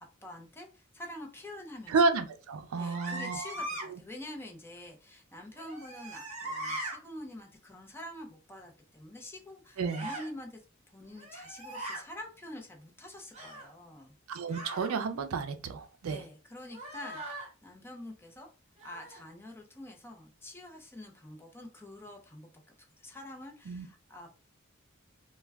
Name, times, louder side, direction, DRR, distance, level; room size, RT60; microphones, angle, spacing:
voice 1, 0.2-2.0 2.8-10.6 10.9-14.1 16.0-18.5 18.8-22.5 23.0-24.3, left 1 dB, 10° left, 0.5 m, -46 dB
voice 2, 1.9-3.5 3.8-4.0 9.8-10.1 14.3-16.2 23.7-23.9, right 4 dB, 80° right, 0.4 m, -31 dB
sound 1, 2.8-3.9 5.6-7.0 9.8-10.3 11.1-12.0 13.3-13.7 14.5-14.9 16.7-17.5 18.8-19.2, right 1 dB, 35° right, 1.0 m, -40 dB
2.2 x 2.2 x 3.3 m
head